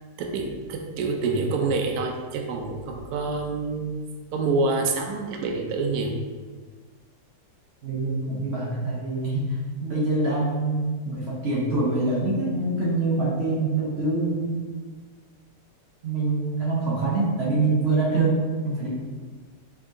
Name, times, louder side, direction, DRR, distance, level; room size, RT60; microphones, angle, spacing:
voice 1, 0.2-3.9 4.3-6.2, right 3 dB, 70° right, 2 dB, 1.1 m, -27 dB
voice 2, 7.8-9.5 9.8-14.6 16.0-18.9, right 2 dB, 45° right, -6 dB, 1.0 m, -25 dB
5.4 x 3.6 x 2.6 m, 1.4 s
omnidirectional pair, 1.8 m